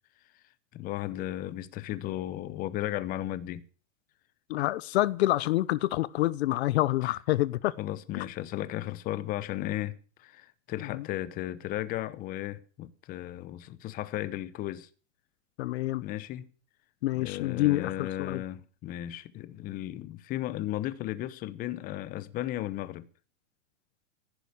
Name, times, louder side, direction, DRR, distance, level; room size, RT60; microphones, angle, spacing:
voice 1, 0.7-3.6 7.0-7.1 7.8-14.9 16.0-16.5 17.1-23.1, left 14 dB, 20° left, 0.8 m, -35 dB
voice 2, 4.5-7.7 10.9-11.0 15.6-16.0 17.0-18.4, left 16 dB, 55° left, 0.7 m, -27 dB
15.5 x 11.0 x 6.8 m
supercardioid pair, 150°, 39 cm